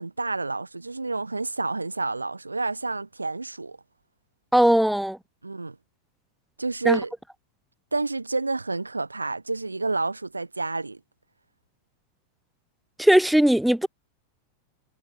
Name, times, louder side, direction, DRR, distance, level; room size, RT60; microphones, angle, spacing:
voice 1, 0.0-3.8 5.4-5.8 6.6-7.1 7.9-11.0, right 3 dB, 80° right, 3.1 m, -29 dB
voice 2, 4.5-5.2 6.8-7.0 13.0-13.9, right 1 dB, ahead, 2.5 m, -19 dB
figure-of-eight pair, 90°, 0 cm